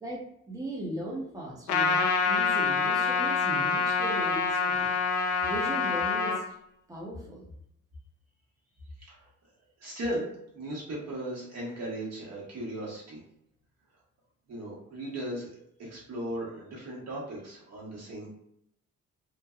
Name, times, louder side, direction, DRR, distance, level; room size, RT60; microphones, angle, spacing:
voice 1, 0.0-4.9 5.4-6.6 6.9-7.5, equal, 10° right, -4 dB, 0.8 m, -38 dB
Trumpet, 1.7-6.4, left 4 dB, 75° left, 0.6 m, -26 dB
voice 2, 9.8-10.3 10.5-13.2 14.5-15.5 15.8-18.3, right 1 dB, 60° right, -5 dB, 1.3 m, -37 dB
3.1 x 2.2 x 2.3 m, 0.75 s
cardioid pair, 90°, 30 cm